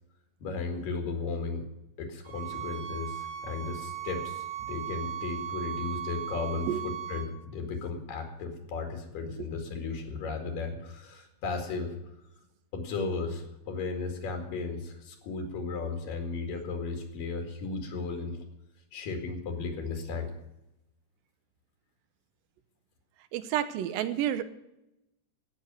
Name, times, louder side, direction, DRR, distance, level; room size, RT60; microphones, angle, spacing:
voice 1, 0.4-1.6 2.0-12.0 12.7-18.4 18.9-20.3, left 4 dB, 70° left, 4 dB, 3.8 m, -35 dB
sound 1, 2.3-7.3, right 10 dB, 60° right, 3.7 m, -37 dB
voice 2, 23.3-24.4, right 11 dB, 80° right, 12 dB, 2.5 m, -30 dB
16.5 x 6.8 x 9.2 m, 0.91 s
omnidirectional pair, 4.1 m